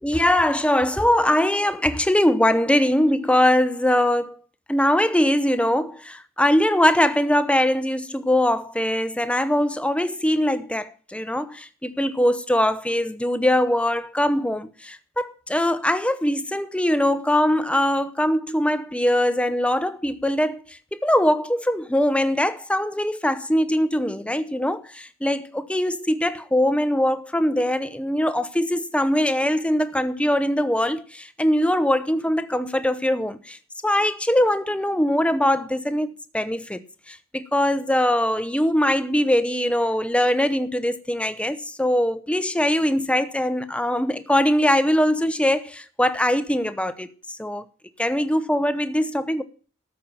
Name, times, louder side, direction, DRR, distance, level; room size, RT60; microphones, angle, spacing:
voice 1, 0.0-4.3 4.7-20.6 20.9-33.6 33.8-47.6 48.0-49.4, left 1 dB, 5° left, 0.8 m, -22 dB
13.5 x 5.8 x 8.9 m
head